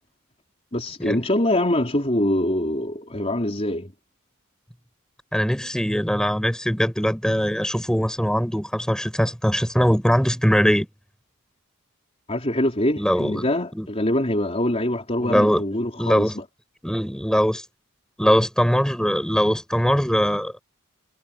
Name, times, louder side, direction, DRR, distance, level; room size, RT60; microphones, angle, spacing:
voice 1, 0.7-3.9 12.3-16.4, left 1 dB, 30° left, 4.0 m, -24 dB
voice 2, 5.3-10.9 13.0-13.4 13.7-13.9 15.2-15.6 16.0-16.3 16.8-17.6 18.2-20.5, equal, 5° left, 7.2 m, -21 dB
head